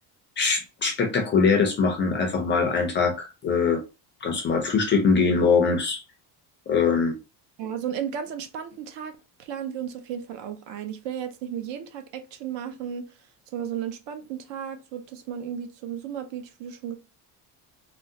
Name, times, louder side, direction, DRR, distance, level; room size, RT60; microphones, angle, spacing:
voice 1, 0.4-3.8 4.2-6.0 6.7-7.1, left 5 dB, 25° left, 0.4 m, -22 dB
voice 2, 7.6-13.1 13.5-17.0, right 9 dB, 65° right, 0.6 m, -34 dB
3.6 x 2.1 x 2.6 m
cardioid pair, 165°, 47 cm